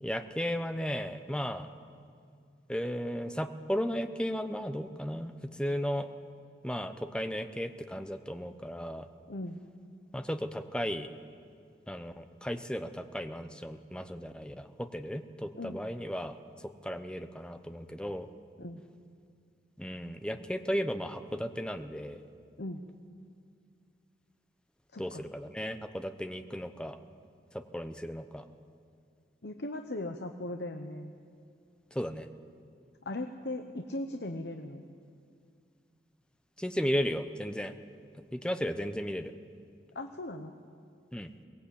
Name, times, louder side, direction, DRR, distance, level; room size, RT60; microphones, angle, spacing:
voice 1, 0.0-1.7 2.7-6.1 6.6-9.1 10.1-11.1 11.9-18.3 19.8-22.2 25.0-27.0 27.5-28.5 31.9-32.3 36.6-37.7 38.3-39.3 41.1-41.3, equal, 5° left, 8 dB, 0.8 m, -35 dB
voice 2, 9.3-9.6 15.5-15.8 18.6-18.8 22.6-22.8 24.9-25.2 29.4-31.1 33.0-34.8 39.9-40.5, left 1 dB, 70° left, 5 dB, 1.0 m, -38 dB
22.5 x 19.0 x 8.5 m, 2.3 s
head